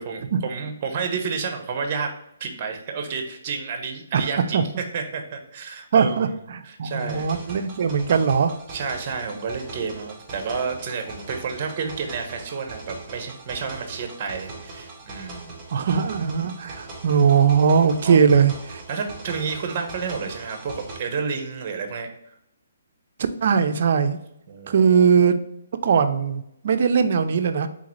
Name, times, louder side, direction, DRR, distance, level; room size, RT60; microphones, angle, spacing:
voice 1, 0.0-2.1 2.4-6.4 6.6-7.3 8.7-15.8 18.0-18.2 18.9-22.1 24.5-25.1, right 5 dB, 35° right, 5 dB, 0.9 m, -30 dB
voice 2, 5.9-8.5 15.7-18.8 23.4-24.2 24.7-25.4 25.8-27.7, right 6 dB, 55° right, 9 dB, 0.5 m, -20 dB
sound 1, 6.9-21.0, right 3 dB, 10° right, 1.5 m, -40 dB
4.1 x 3.7 x 3.1 m, 0.78 s
hypercardioid pair, 155°, 0 cm